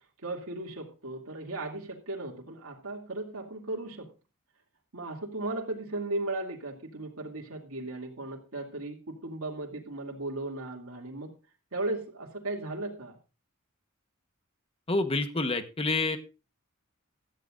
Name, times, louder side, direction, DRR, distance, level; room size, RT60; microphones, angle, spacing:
voice 1, 0.2-4.1 4.9-11.3 11.7-13.2, right 2 dB, 80° right, -1 dB, 2.7 m, -36 dB
voice 2, 14.9-16.2, left 2 dB, 25° left, 9 dB, 1.2 m, -28 dB
16.5 x 13.0 x 2.6 m, 0.31 s
head